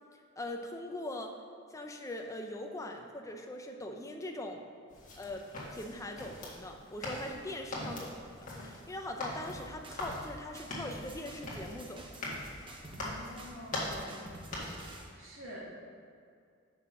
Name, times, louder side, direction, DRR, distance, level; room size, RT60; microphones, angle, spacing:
voice 1, 0.4-1.3 1.7-4.6 5.2-5.4 5.7-12.2, left 1 dB, 15° left, 3 dB, 0.6 m, -41 dB
sound 1, 4.9-15.0, left 1 dB, 40° left, 1.7 m, -42 dB
sound 2, 9.5-10.3 10.5-13.1 13.4-15.1, right 1 dB, 25° right, 0.8 m, -48 dB
voice 2, 13.0-14.3 15.2-15.7, equal, 75° right, -4 dB, 1.8 m, -47 dB
5.9 x 5.8 x 6.1 m, 2.3 s
head